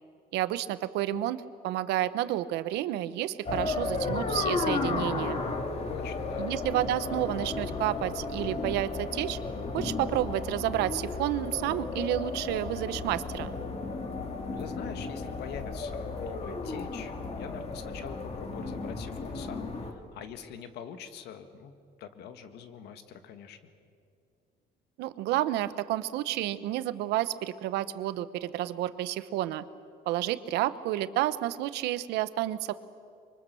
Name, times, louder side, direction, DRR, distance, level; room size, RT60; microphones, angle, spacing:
voice 1, 0.3-5.4 6.4-9.4 9.7-13.5 25.0-29.6 30.1-32.7, right 14 dB, 90° right, 14 dB, 0.9 m, -30 dB
sound 1, 3.5-19.9, left 3 dB, 35° left, 2.2 m, -34 dB
voice 2, 5.9-6.5 14.5-23.6, left 8 dB, 80° left, 9 dB, 1.7 m, -44 dB
25.0 x 23.5 x 6.9 m, 2.3 s
cardioid pair, 110°, 17 cm